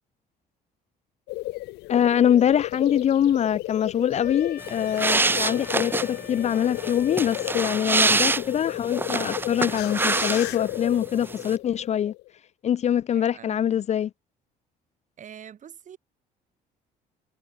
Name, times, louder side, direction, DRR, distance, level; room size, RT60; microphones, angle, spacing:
sound 1, 1.3-12.3, left 20 dB, 85° left, 0.9 m, -33 dB
voice 1, 1.9-12.1 12.6-14.1, left 9 dB, 40° left, 0.5 m, -24 dB
Wind instrument woodwind instrument, 4.2-8.4, left 12 dB, 65° left, 7.6 m, -44 dB
sound 2, 4.6-10.8 11.1-11.6, right 3 dB, 10° right, 0.4 m, -26 dB
voice 2, 13.1-13.8 15.2-16.0, right 8 dB, 45° right, 4.2 m, -45 dB
cardioid pair, 110°, 17 cm